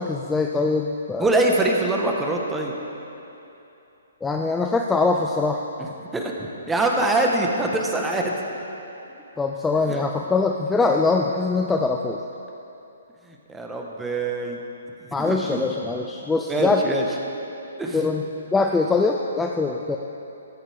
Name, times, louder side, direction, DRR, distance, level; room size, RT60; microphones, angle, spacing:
voice 1, 0.0-1.3 4.2-5.6 9.4-12.2 15.1-16.8 17.9-18.3 18.5-20.0, left 3 dB, 10° left, 1 dB, 0.5 m, -22 dB
voice 2, 1.2-2.7 6.1-8.3 9.9-10.0 13.3-14.6 15.2-15.6 16.5-17.0 17.8-18.0, right 2 dB, 10° right, 0 dB, 1.4 m, -24 dB
14.5 x 13.5 x 3.6 m, 2.9 s
hypercardioid pair, 140°, 0 cm